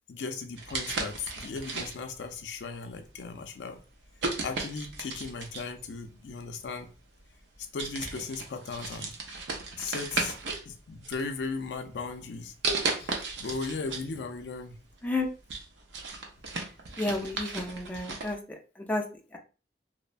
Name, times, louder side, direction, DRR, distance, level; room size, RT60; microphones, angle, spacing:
voice 1, 0.1-3.8 4.4-6.9 7.7-9.2 9.8-10.4 10.7-12.5 13.0-14.8, left 4 dB, 70° left, 0.4 m, -37 dB
sound 1, 0.6-2.2 2.9-3.2 4.2-5.8 6.8-6.9 7.4-7.5 7.8-10.7 11.0-11.7 12.6-14.1 14.4-14.5 15.0-18.3, right 3 dB, 80° right, 0.6 m, -35 dB
voice 2, 17.0-18.4 18.9-19.0, left 2 dB, 10° left, 0.4 m, -30 dB
3.1 x 2.0 x 2.4 m
head